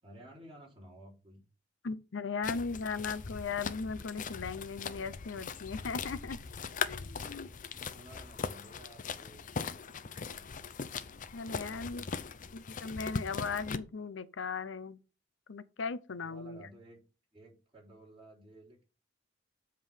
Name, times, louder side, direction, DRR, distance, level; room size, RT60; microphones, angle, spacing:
voice 1, 0.0-1.4 7.7-9.5 11.6-12.2 16.2-17.0 17.3-18.8, right 1 dB, 30° right, 3.6 m, -54 dB
voice 2, 1.8-6.4 6.9-7.5 11.3-12.0 12.5-15.0 15.5-16.6, left 5 dB, 85° left, 0.6 m, -38 dB
sound 1, 2.4-13.8, left 5 dB, 45° left, 0.6 m, -40 dB
7.5 x 3.7 x 6.2 m
head